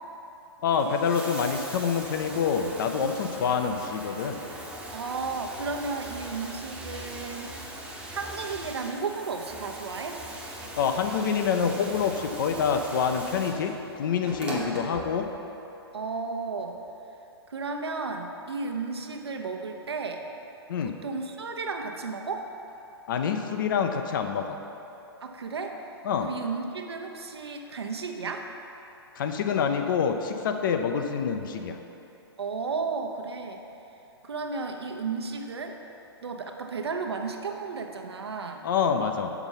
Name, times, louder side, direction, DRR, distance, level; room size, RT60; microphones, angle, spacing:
voice 1, 0.6-4.4 10.8-15.3 20.7-20.9 23.1-24.6 26.0-26.3 29.2-31.8 38.6-39.3, left 6 dB, 50° left, 5 dB, 0.6 m, -26 dB
Bathtub (filling or washing), 0.6-15.6 16.7-16.8, right 1 dB, 10° right, 0.9 m, -40 dB
voice 2, 4.9-10.2 14.4-15.0 15.9-16.8 17.5-20.2 20.8-22.5 25.2-25.8 26.2-28.5 32.4-33.6 34.2-35.8 36.2-38.6, right 4 dB, 70° right, 3 dB, 0.8 m, -33 dB
6.9 x 6.0 x 5.7 m, 3.0 s
figure-of-eight pair, 120°, 14 cm